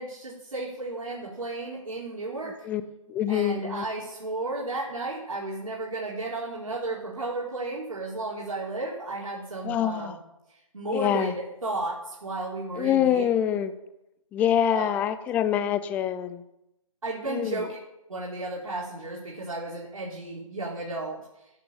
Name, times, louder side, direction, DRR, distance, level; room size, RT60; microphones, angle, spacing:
voice 1, 0.0-2.6 3.3-10.2 10.7-13.2 14.7-15.0 17.0-17.8 18.1-21.2, right 2 dB, 80° right, -5 dB, 4.3 m, -33 dB
voice 2, 3.1-3.9 9.6-10.2 10.9-11.3 12.8-13.7 14.3-16.4 17.3-17.7, left 10 dB, 10° left, 12 dB, 0.4 m, -25 dB
14.5 x 6.7 x 7.4 m, 0.89 s
hypercardioid pair, 145°, 17 cm